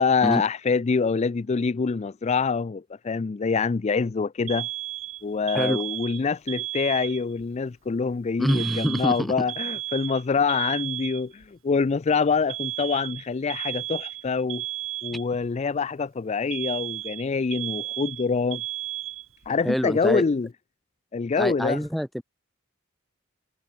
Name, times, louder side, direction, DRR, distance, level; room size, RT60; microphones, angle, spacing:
voice 1, 0.0-4.7 5.2-14.6 15.0-18.6 19.5-20.5 21.1-21.8, left 5 dB, 30° left, 0.4 m, -25 dB
Alarm, 4.5-7.4 8.5-11.5 12.5-15.5 16.5-19.5, right 15 dB, 70° right, 3.7 m, -34 dB
voice 2, 8.4-9.3 19.6-20.2 21.4-22.2, equal, ahead, 2.2 m, -25 dB
head